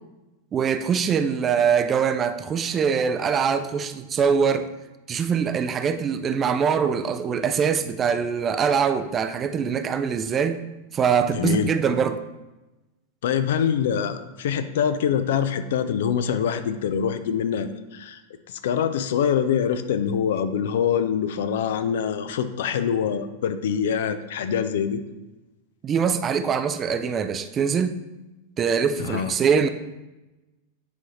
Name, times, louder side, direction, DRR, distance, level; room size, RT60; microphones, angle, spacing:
voice 1, 0.5-4.7 5.1-10.6 10.9-12.2 25.8-28.0 28.6-29.7, right 6 dB, 25° right, 10 dB, 0.4 m, -23 dB
voice 2, 11.3-11.7 13.2-18.2 18.5-25.0 29.0-29.3, left 8 dB, 55° left, 10 dB, 0.4 m, -24 dB
8.5 x 4.8 x 3.1 m, 1.0 s
figure-of-eight pair, 90°, 0 cm